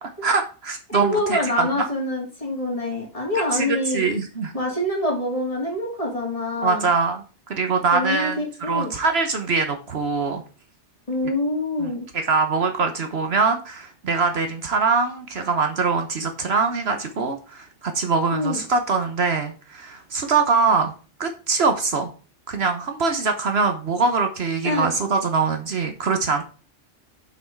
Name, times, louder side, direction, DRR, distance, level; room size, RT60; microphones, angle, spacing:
voice 1, 0.0-1.7 3.5-4.5 6.6-8.4 8.7-10.4 11.8-11.9 12.3-20.9 21.2-22.1 22.5-26.4, right 4 dB, 60° right, 6 dB, 1.2 m, -23 dB
voice 2, 0.9-4.0 4.5-6.9 7.9-8.9 11.1-12.1 18.3-18.6 24.6-24.9, left 1 dB, 30° left, -1 dB, 2.6 m, -25 dB
6.4 x 6.1 x 4.6 m, 0.35 s
omnidirectional pair, 1.2 m